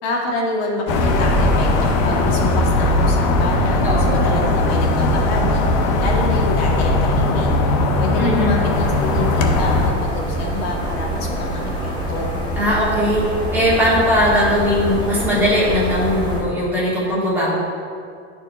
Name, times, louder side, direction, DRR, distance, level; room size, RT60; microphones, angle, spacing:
voice 1, 0.0-5.6 6.0-7.5 8.0-12.3, left 2 dB, 65° left, -1 dB, 1.1 m, -27 dB
sound 1, 0.9-9.9, left 2 dB, 35° left, 0.5 m, -18 dB
voice 2, 3.8-4.3 8.2-8.6 12.6-13.2 13.5-17.5, equal, 5° right, -9 dB, 1.4 m, -19 dB
sound 2, 8.7-16.4, equal, 15° left, 1.1 m, -26 dB
10.0 x 4.4 x 2.3 m, 2.2 s
supercardioid pair, 165°, 34 cm